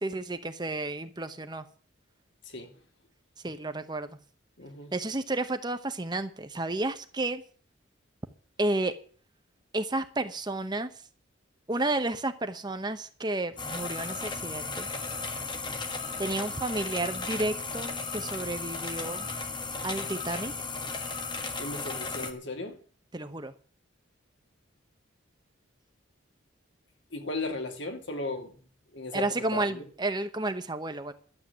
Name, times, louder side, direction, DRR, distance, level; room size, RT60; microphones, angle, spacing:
voice 1, 0.0-1.6 3.4-4.2 4.9-7.4 8.6-8.9 9.7-10.9 11.7-14.9 16.2-19.3 19.8-20.7 23.1-23.5 29.1-31.1, right 2 dB, 20° right, 0.9 m, -31 dB
voice 2, 4.6-4.9 21.6-22.8 27.1-28.5 28.9-29.2 29.5-29.8, left 2 dB, 65° left, 2.9 m, -36 dB
sound 1, 13.6-22.3, left 4 dB, 25° left, 1.7 m, -35 dB
12.0 x 8.0 x 9.1 m
head